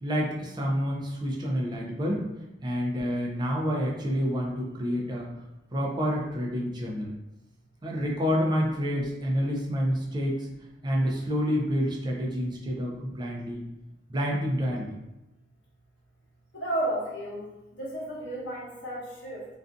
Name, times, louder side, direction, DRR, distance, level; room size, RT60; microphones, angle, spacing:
voice 1, 0.0-2.2 2.6-5.3 5.7-7.1 7.8-10.5 10.8-13.6 14.1-14.9, equal, 25° right, -2 dB, 0.4 m, -28 dB
voice 2, 16.5-19.5, right 1 dB, 85° left, -4 dB, 0.8 m, -33 dB
2.4 x 2.3 x 2.5 m, 0.95 s
head